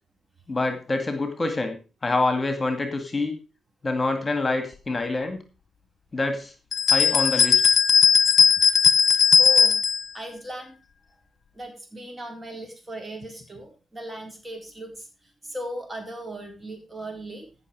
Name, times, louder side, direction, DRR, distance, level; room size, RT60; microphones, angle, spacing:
voice 1, 0.5-3.4 3.8-5.4 6.1-6.5 6.9-7.8, left 2 dB, 30° left, 7 dB, 2.1 m, -26 dB
sound 1, 6.7-10.0, left 6 dB, 55° left, 1.0 m, -18 dB
voice 2, 9.4-9.8 10.1-10.8 11.5-15.1 15.4-17.5, right 1 dB, 25° right, 4 dB, 4.5 m, -37 dB
15.0 x 6.2 x 4.8 m, 0.33 s
hypercardioid pair, 45°, 0 cm